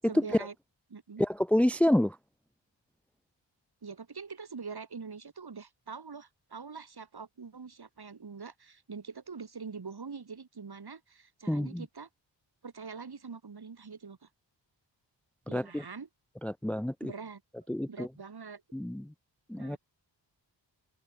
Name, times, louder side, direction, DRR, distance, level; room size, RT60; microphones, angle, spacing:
voice 1, 0.1-0.5 0.9-1.2 3.8-12.1 12.6-14.3 15.5-16.1 17.0-17.4 17.9-18.6 19.6-19.8, right 5 dB, 55° right, 5.3 m, -44 dB
voice 2, 1.2-2.2 11.5-11.8 15.5-15.8 16.4-17.1 17.7-18.1 18.7-19.1 19.5-19.8, left 1 dB, 5° left, 0.6 m, -28 dB
wide cardioid pair, 90°, 45 cm